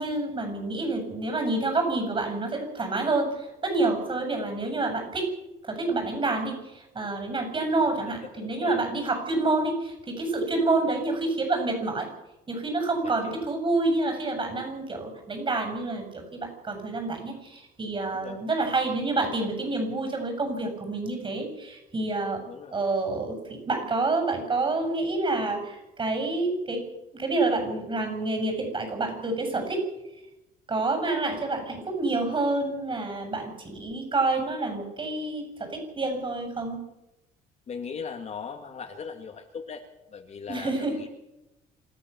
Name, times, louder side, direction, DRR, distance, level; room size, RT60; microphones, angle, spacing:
voice 1, 0.0-5.3 5.6-12.1 12.5-22.4 22.7-26.8 27.1-29.8 30.7-36.8 40.5-40.9, right 2 dB, 30° right, 5 dB, 7.5 m, -28 dB
voice 2, 8.4-8.8 13.0-13.4 18.1-18.4 22.2-22.8 37.7-39.8 40.1-41.1, left 6 dB, 40° left, 3 dB, 2.3 m, -39 dB
27.0 x 14.0 x 7.1 m, 0.94 s
cardioid pair, 110°, 17 cm